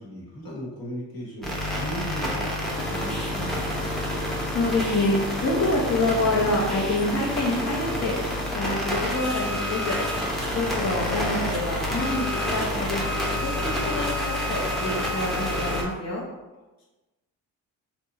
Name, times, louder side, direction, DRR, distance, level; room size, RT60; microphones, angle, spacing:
voice 1, 0.0-3.7 13.6-13.8 16.8-16.9, right 1 dB, 55° left, -3 dB, 1.1 m, -37 dB
sound 1, 1.4-15.8, left 1 dB, ahead, 0.6 m, -28 dB
voice 2, 4.5-8.1 8.5-10.0 10.5-13.0 13.4-16.2, left 2 dB, 40° left, -5 dB, 0.6 m, -27 dB
2.8 x 2.2 x 2.7 m, 1.1 s
cardioid pair, 65°, 42 cm